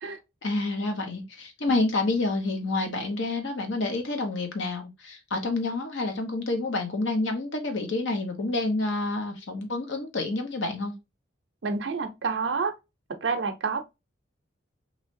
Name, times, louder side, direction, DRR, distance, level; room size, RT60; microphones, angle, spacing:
voice 1, 0.4-10.9, left 2 dB, 75° left, 0.9 m, -28 dB
voice 2, 11.6-12.7 13.2-13.8, right 4 dB, 65° right, 0.6 m, -28 dB
3.2 x 2.7 x 2.6 m
head